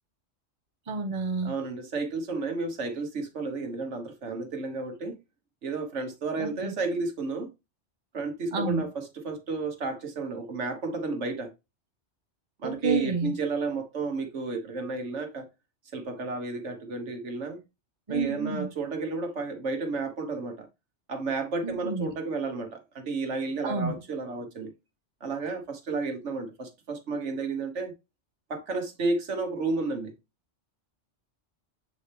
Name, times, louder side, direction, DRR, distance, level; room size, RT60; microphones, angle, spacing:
voice 1, 0.9-1.6 6.4-6.7 8.5-8.8 12.6-13.3 18.1-18.7 21.6-22.1 23.6-24.0, right 4 dB, 30° right, 0.9 m, -30 dB
voice 2, 1.4-5.2 5.6-7.5 8.1-11.5 12.6-15.5 15.9-17.6 18.1-20.7 21.1-24.7 25.2-27.9 28.5-30.1, right 3 dB, 80° right, 1.5 m, -32 dB
7.8 x 4.3 x 3.3 m
omnidirectional pair, 1.2 m